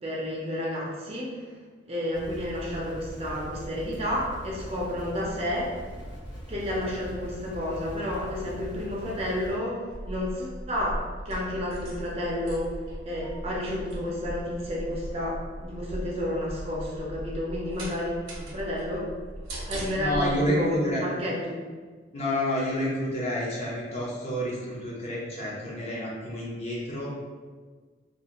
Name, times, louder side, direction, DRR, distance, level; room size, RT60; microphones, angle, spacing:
voice 1, 0.0-1.6 1.9-5.7 6.5-12.7 13.0-19.1 19.7-21.6, left 1 dB, 30° right, -4 dB, 0.4 m, -31 dB
sound 1, 2.1-9.6, equal, 75° left, 1.0 m, -41 dB
sound 2, 9.9-20.4, equal, 85° right, 0.6 m, -38 dB
voice 2, 20.0-21.0 22.1-27.1, equal, 35° left, -6 dB, 0.6 m, -29 dB
2.4 x 2.4 x 2.9 m, 1.5 s
head